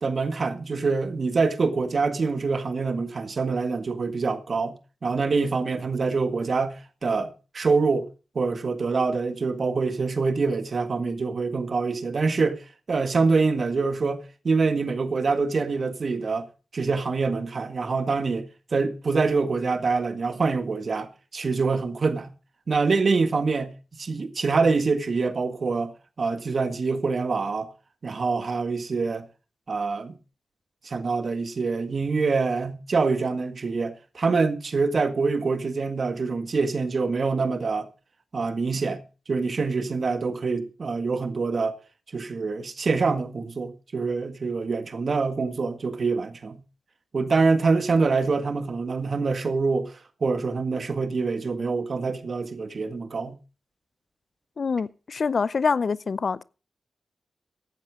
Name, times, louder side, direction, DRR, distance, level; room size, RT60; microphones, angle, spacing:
voice 1, 0.0-4.8 5.0-8.1 8.4-12.6 12.9-16.5 16.7-22.3 22.7-25.9 26.2-27.7 28.0-29.3 29.7-30.2 30.8-37.9 38.3-39.0 39.3-41.8 42.1-46.6 47.1-49.9 50.2-53.4, right 4 dB, 60° right, 1.8 m, -25 dB
voice 2, 54.6-56.4, left 5 dB, 60° left, 0.6 m, -25 dB
15.5 x 11.5 x 3.7 m
supercardioid pair, 40°, 0 cm